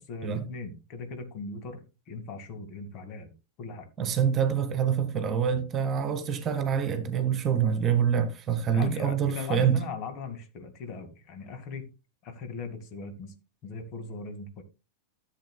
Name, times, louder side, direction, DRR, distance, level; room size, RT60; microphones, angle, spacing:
voice 1, 0.0-3.3 3.6-3.9 8.7-11.9 12.2-13.3 13.6-14.6, left 3 dB, 40° left, 1.9 m, -39 dB
voice 2, 4.0-9.8, right 8 dB, 30° right, 1.6 m, -26 dB
14.5 x 7.6 x 2.2 m
figure-of-eight pair, 90°, 0 cm